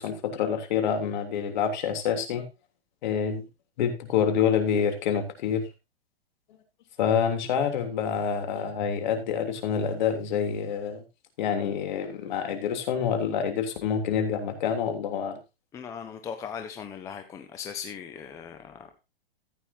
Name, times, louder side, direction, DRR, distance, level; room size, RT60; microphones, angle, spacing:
voice 1, 0.0-2.4 3.0-3.4 3.8-5.7 7.0-11.0 11.4-15.4, left 7 dB, 50° left, 6 dB, 3.2 m, -27 dB
voice 2, 15.7-18.9, left 7 dB, 10° left, 7 dB, 0.6 m, -38 dB
14.5 x 9.0 x 2.7 m, 0.25 s
hypercardioid pair, 155°, 30 cm